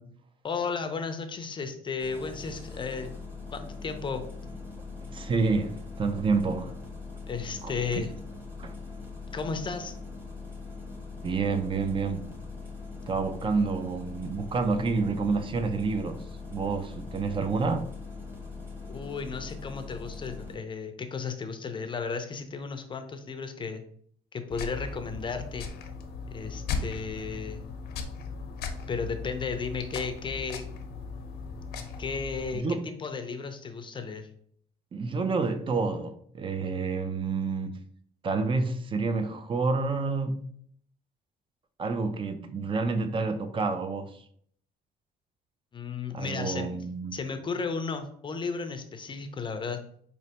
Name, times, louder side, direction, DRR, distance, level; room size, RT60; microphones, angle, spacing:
voice 1, 0.4-3.1 3.5-4.2 7.3-8.1 9.3-9.9 18.8-23.8 24.3-25.7 26.3-27.7 28.7-30.6 32.0-34.3 45.7-46.7 47.1-49.8, left 5 dB, 30° left, 0.5 m, -34 dB
Engine starting, 2.0-20.5, left 4 dB, 15° right, 1.1 m, -41 dB
voice 2, 5.1-6.8 7.6-8.1 8.6-8.8 11.2-12.3 13.1-17.9 32.5-32.9 34.9-37.8 38.2-40.4 41.8-44.2 46.1-47.2, right 4 dB, 30° right, 0.4 m, -29 dB
sound 1, 24.5-32.6, left 5 dB, 70° left, 0.6 m, -37 dB
4.1 x 3.2 x 2.9 m
cardioid pair, 110°, 17 cm